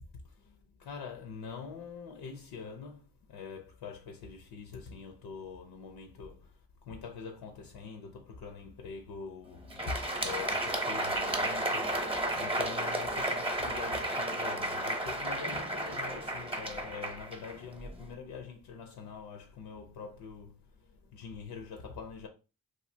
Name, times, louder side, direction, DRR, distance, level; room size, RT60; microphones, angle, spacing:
voice 1, 0.2-22.3, left 5 dB, 85° left, 0.5 m, -44 dB
Crowd, 9.6-18.1, right 1 dB, 15° right, 0.7 m, -33 dB
3.0 x 2.5 x 2.6 m
cardioid pair, 55°, 38 cm